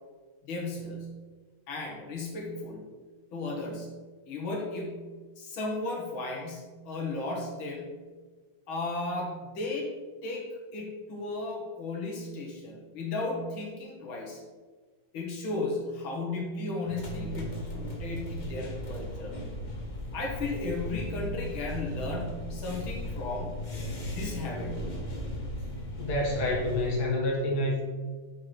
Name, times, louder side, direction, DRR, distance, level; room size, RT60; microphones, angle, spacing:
voice 1, 0.4-1.0 1.7-2.8 3.3-3.9 4.3-5.1 5.4-8.0 8.7-9.9 10.2-14.4 15.1-19.4 20.1-23.6 24.1-24.7, left 2 dB, 85° left, -1 dB, 2.2 m, -35 dB
sound 1, 16.8-26.9, equal, 30° left, 0.9 m, -37 dB
voice 2, 26.0-27.8, left 1 dB, 55° left, -2 dB, 1.9 m, -28 dB
6.5 x 5.9 x 4.6 m, 1.4 s
omnidirectional pair, 2.2 m